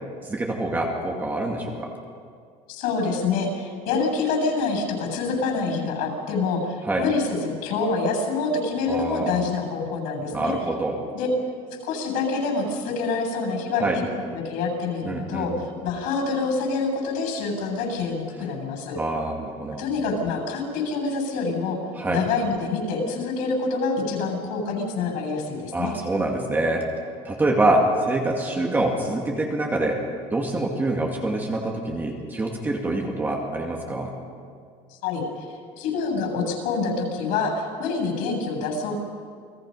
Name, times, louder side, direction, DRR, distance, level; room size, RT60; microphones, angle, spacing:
voice 1, 0.2-1.9 6.8-7.0 8.9-9.4 10.3-11.0 13.8-14.0 15.0-15.5 18.9-19.8 22.0-22.2 25.7-26.9 27.2-30.0 30.3-34.2, right 2 dB, 10° right, 0 dB, 2.1 m, -25 dB
voice 2, 2.7-10.5 11.1-11.3 11.8-14.0 14.3-19.0 19.8-21.8 22.1-25.9 34.9-39.0, left 4 dB, 65° left, 4 dB, 8.0 m, -26 dB
29.5 x 20.0 x 5.5 m, 2.2 s
cardioid pair, 180°, 15 cm